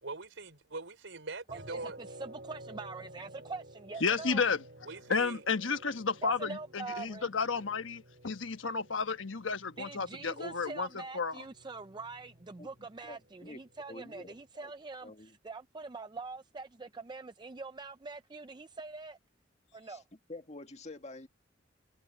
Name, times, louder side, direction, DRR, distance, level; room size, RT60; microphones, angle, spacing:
voice 1, 0.0-2.0 4.8-5.4, right 3 dB, 80° right, 4.4 m, -42 dB
voice 2, 1.5-4.4 6.2-7.3 9.8-19.2 19.7-20.0, right 3 dB, 25° right, 0.5 m, -44 dB
sound 1, 1.5-14.5, right 1 dB, 60° right, 4.9 m, -54 dB
voice 3, 4.0-4.6 5.1-10.9 11.1-11.3, left 5 dB, 90° left, 1.2 m, -32 dB
voice 4, 12.6-13.6 13.9-14.7 15.0-15.4 19.8-20.0 20.3-21.3, left 2 dB, 35° left, 1.9 m, -48 dB
head